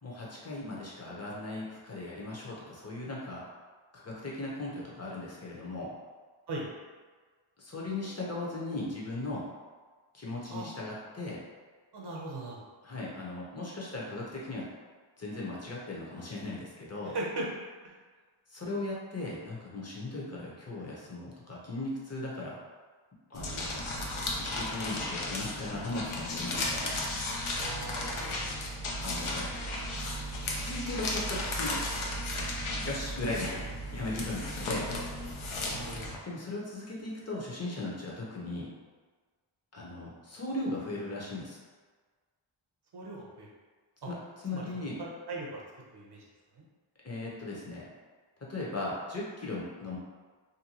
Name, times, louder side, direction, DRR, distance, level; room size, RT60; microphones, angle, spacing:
voice 1, 0.0-3.5 3.9-5.9 7.6-9.5 10.1-11.4 12.8-14.7 15.2-17.2 18.5-22.6 23.3-23.9 24.4-27.0 29.0-29.5 30.4-31.7 32.8-34.9 36.2-38.7 39.7-41.6 44.0-44.1 44.4-45.0 47.0-47.9 48.4-50.0, left 2 dB, 30° left, -5 dB, 0.8 m, -37 dB
voice 2, 11.9-12.6 17.0-17.5 17.8-17.9 27.5-28.5 35.7-36.1 42.9-43.5 44.0-44.1 44.5-45.6 45.9-46.2 46.5-46.6, right 2 dB, 55° right, -2 dB, 0.7 m, -39 dB
sound 1, 23.3-36.2, left 1 dB, 80° left, 0.6 m, -35 dB
2.7 x 2.2 x 2.9 m, 1.5 s
wide cardioid pair, 50°, 48 cm